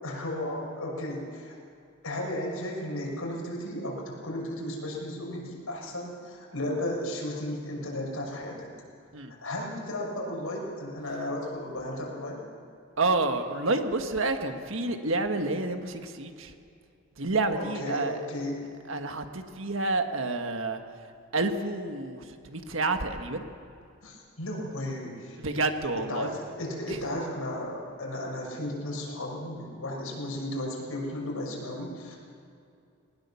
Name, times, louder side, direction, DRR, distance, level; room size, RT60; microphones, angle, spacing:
voice 1, 0.0-1.5 2.0-8.7 9.4-12.4 17.5-18.6 24.0-25.4 26.0-32.2, left 1 dB, 85° left, -2 dB, 6.1 m, -34 dB
voice 2, 13.0-16.5 17.2-18.2 18.9-20.8 21.3-23.5 25.4-26.3 26.9-27.0, right 2 dB, 70° right, 6 dB, 1.6 m, -29 dB
20.5 x 19.5 x 7.1 m, 2.5 s
head